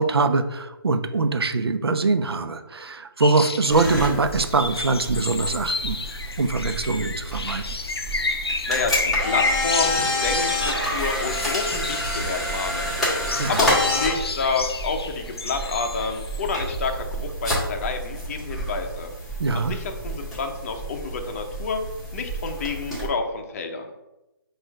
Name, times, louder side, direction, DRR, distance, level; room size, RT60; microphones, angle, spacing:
voice 1, 0.0-6.0 6.4-7.6 13.4-13.6 19.4-19.8, right 3 dB, 85° right, 9 dB, 0.5 m, -23 dB
sound 1, 3.2-3.9 4.3-12.7 13.1-16.8, left 3 dB, 90° left, 0.6 m, -30 dB
sound 2, 3.7-23.1, equal, ahead, 1.2 m, -29 dB
voice 2, 8.7-13.2 13.5-19.1 19.5-21.8 22.1-23.9, left 4 dB, 35° left, 4 dB, 0.6 m, -29 dB
4.2 x 2.5 x 4.6 m, 0.99 s
figure-of-eight pair, 150°, 13 cm